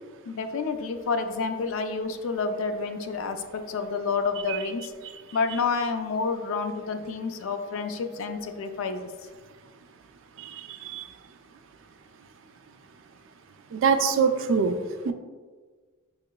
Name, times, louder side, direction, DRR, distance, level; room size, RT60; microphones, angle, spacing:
voice 1, 0.3-4.9 5.3-9.1, left 4 dB, 70° left, 7 dB, 0.3 m, -29 dB
voice 2, 10.4-11.1 13.7-14.7 15.1-15.2, right 6 dB, 60° right, 8 dB, 0.3 m, -24 dB
4.7 x 3.0 x 2.2 m, 1.4 s
head